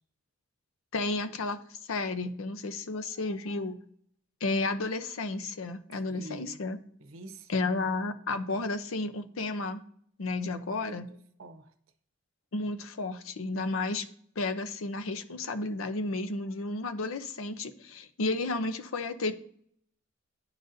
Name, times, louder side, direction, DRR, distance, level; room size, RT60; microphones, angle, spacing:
voice 1, 0.9-3.8 4.4-6.8 7.5-9.8 10.2-11.1 12.5-14.1 14.4-19.3, left 3 dB, 80° left, 0.6 m, -32 dB
voice 2, 6.1-6.6 7.0-7.7 10.7-11.7, right 2 dB, 80° right, 0.7 m, -47 dB
10.5 x 3.9 x 2.6 m
head